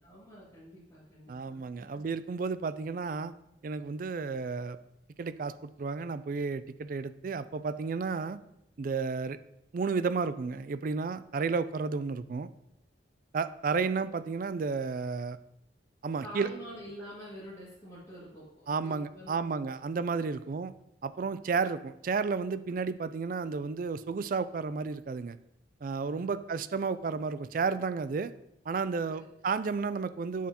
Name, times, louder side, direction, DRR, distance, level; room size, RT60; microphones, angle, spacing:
voice 1, 0.0-2.1 16.2-19.5 20.3-20.4 26.2-26.3 29.1-29.2, equal, 15° left, -11 dB, 2.1 m, -47 dB
voice 2, 1.3-3.3 3.6-4.8 5.2-8.4 8.8-9.4 9.7-12.5 13.3-15.4 16.0-16.5 18.7-20.7 21.0-25.4 25.8-28.3 28.7-30.5, right 4 dB, 45° right, 14 dB, 0.3 m, -32 dB
7.4 x 7.0 x 2.9 m, 0.81 s
head